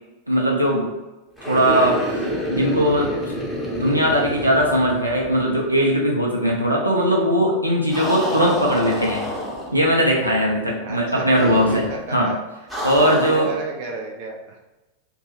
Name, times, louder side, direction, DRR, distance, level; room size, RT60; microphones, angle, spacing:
voice 1, 0.3-0.9 1.5-2.0 2.5-3.1 3.7-9.2 9.7-11.8 12.1-12.3 12.8-13.5, equal, 90° right, -3 dB, 0.6 m, -19 dB
sound 1, 1.4-5.5 5.8-5.9 7.9-9.9 11.3-12.0 12.7-13.5, equal, ahead, 0.7 m, -28 dB
voice 2, 10.8-11.3 11.7-12.4 13.0-14.6, right 3 dB, 45° right, 0 dB, 0.4 m, -33 dB
2.5 x 2.2 x 2.9 m, 1.1 s
figure-of-eight pair, 90°, 0 cm